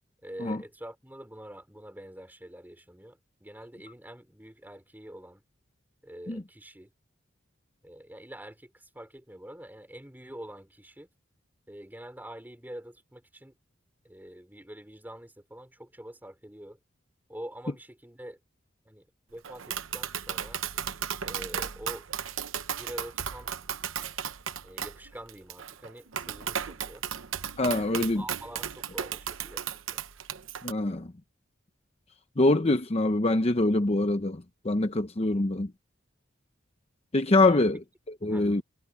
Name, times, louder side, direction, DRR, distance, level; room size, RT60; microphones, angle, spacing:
voice 1, 0.2-5.4 6.0-6.9 7.8-11.1 11.7-13.5 14.0-16.8 17.3-18.4 18.9-20.6 21.2-22.1 22.7-23.5 24.6-27.1 27.9-29.6 29.9-30.0 37.4-37.7 38.3-38.5, right 1 dB, 10° right, 3.9 m, -45 dB
Tap, 19.4-30.7, right 8 dB, 85° right, 0.9 m, -35 dB
voice 2, 27.6-28.2 30.6-31.1 32.4-35.7 37.1-37.8 38.2-38.6, left 2 dB, 30° left, 0.8 m, -24 dB
head